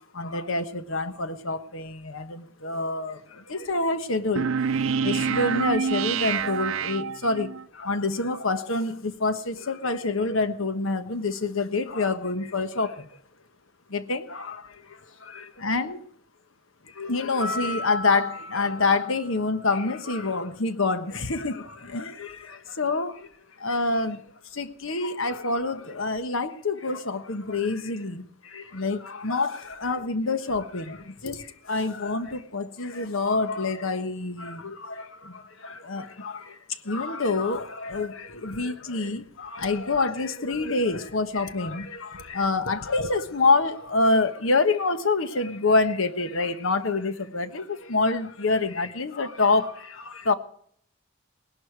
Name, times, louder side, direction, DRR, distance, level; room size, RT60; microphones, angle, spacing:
voice 1, 0.1-4.5 4.9-13.1 13.9-16.0 16.9-23.3 23.6-24.2 24.5-50.3, left 3 dB, 75° left, 1.3 m, -27 dB
sound 1, 4.4-7.6, right 6 dB, 75° right, 0.5 m, -27 dB
sound 2, 17.4-19.9, left 1 dB, 15° right, 0.8 m, -36 dB
19.5 x 11.5 x 4.7 m
head